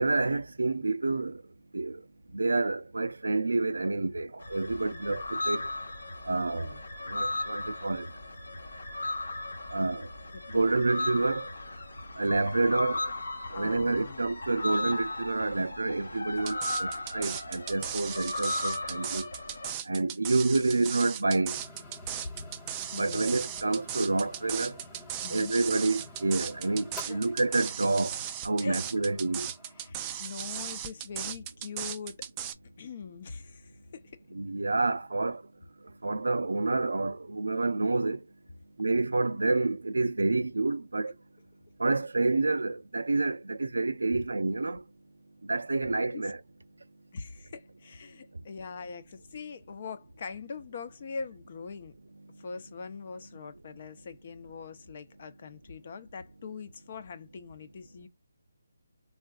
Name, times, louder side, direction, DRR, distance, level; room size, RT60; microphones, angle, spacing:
voice 1, 0.0-1.4 1.7-2.0 2.3-5.7 6.2-6.8 7.1-8.1 9.7-10.1 10.5-11.5 12.2-13.1 13.5-19.3 19.9-21.6 22.9-24.8 25.3-29.5 34.3-35.4 36.0-38.2 38.8-41.1 41.8-44.8 45.4-46.4, right 3 dB, 90° right, 0.4 m, -28 dB
sound 1, 4.4-19.7, left 2 dB, 85° left, 1.0 m, -36 dB
voice 2, 10.3-10.7 13.5-14.2 22.9-23.4 25.2-25.5 27.0-27.2 28.6-28.8 29.8-32.3 32.8-34.2 46.1-46.3 47.1-51.9 52.4-58.1, left 5 dB, 40° left, 0.6 m, -42 dB
sound 2, 16.5-32.5, right 10 dB, 20° right, 0.3 m, -37 dB
sound 3, 21.5-29.9, left 2 dB, 10° left, 0.9 m, -50 dB
3.6 x 2.4 x 2.4 m
hypercardioid pair, 165°, 0 cm